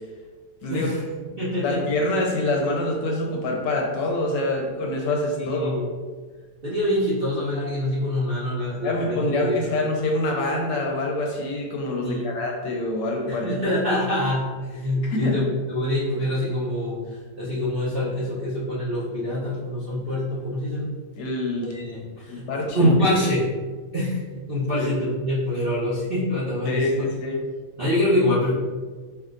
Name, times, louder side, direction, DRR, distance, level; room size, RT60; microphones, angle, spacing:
voice 1, 0.7-1.0 1.4-1.8 5.4-5.8 6.6-9.7 12.0-12.3 13.3-17.0 17.3-20.9 21.6-22.5 22.7-23.4 23.9-24.2 24.5-26.9 27.8-28.5, left 1 dB, 50° right, -11 dB, 0.6 m, -25 dB
voice 2, 1.6-5.8 8.8-13.5 15.0-15.4 21.2-21.7 22.3-22.9 24.8-24.9 26.7-27.4, left 2 dB, 70° left, 0 dB, 1.2 m, -25 dB
4.5 x 3.0 x 2.5 m, 1.5 s
omnidirectional pair, 2.1 m